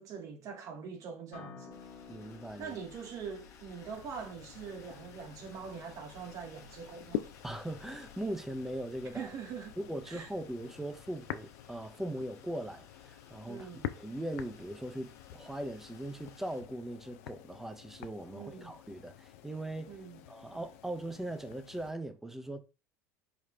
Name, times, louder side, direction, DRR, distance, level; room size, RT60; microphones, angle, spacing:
voice 1, 0.0-1.8 2.6-7.3 9.1-9.8 10.1-10.3 13.5-13.9 18.3-18.7 19.9-20.2, right 6 dB, 45° right, 0.7 m, -43 dB
Acoustic guitar, 1.3-6.5, left 6 dB, 60° left, 1.2 m, -54 dB
sound 1, 1.7-16.6, left 6 dB, 40° left, 0.9 m, -58 dB
voice 2, 2.1-2.8 7.4-9.3 9.8-22.6, right 1 dB, 5° right, 0.5 m, -40 dB
sound 2, 3.9-21.9, left 12 dB, 80° left, 0.4 m, -47 dB
4.9 x 2.4 x 3.3 m
supercardioid pair, 115°, 8 cm